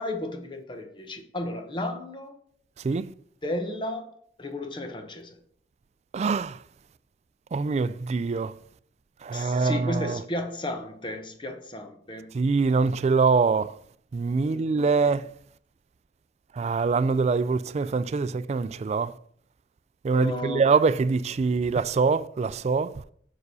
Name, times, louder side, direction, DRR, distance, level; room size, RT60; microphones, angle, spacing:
voice 1, 0.0-2.3 3.4-4.1 4.4-5.3 9.3-12.3 14.4-15.2 20.1-20.7, left 1 dB, 30° left, 0.9 m, -34 dB
voice 2, 6.1-6.6 7.5-8.5 9.2-10.2 12.3-13.7 14.1-15.3 16.6-19.1 20.0-22.9, right 4 dB, 40° right, 0.3 m, -24 dB
6.7 x 4.9 x 6.2 m
head